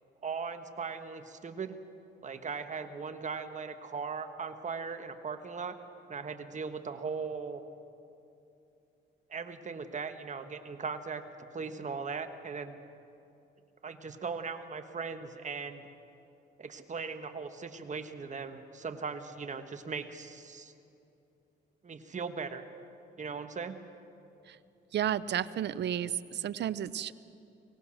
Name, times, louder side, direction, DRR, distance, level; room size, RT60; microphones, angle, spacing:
voice 1, 0.2-1.8 2.2-5.8 6.1-7.6 9.3-11.2 11.5-12.8 13.8-15.9 16.6-20.7 21.8-22.7 23.2-23.8, right 5 dB, 40° right, 8 dB, 1.5 m, -38 dB
voice 2, 24.9-27.1, right 10 dB, 60° right, 17 dB, 0.7 m, -32 dB
24.0 x 18.0 x 6.5 m, 2.8 s
cardioid pair, 90°, 20 cm